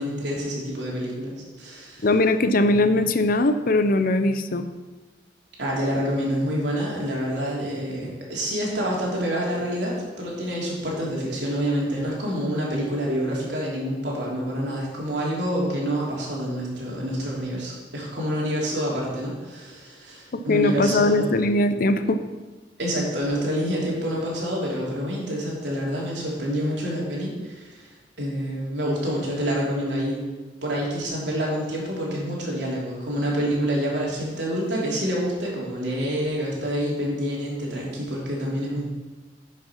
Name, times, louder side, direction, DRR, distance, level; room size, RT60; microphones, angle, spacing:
voice 1, 0.0-1.3 1.6-2.1 5.6-21.4 22.8-27.9 28.2-30.3 30.6-38.9, equal, 75° right, -4 dB, 3.1 m, -27 dB
voice 2, 2.0-4.6 20.3-22.2, left 2 dB, 55° left, 9 dB, 0.6 m, -20 dB
9.4 x 5.8 x 5.9 m, 1.3 s
head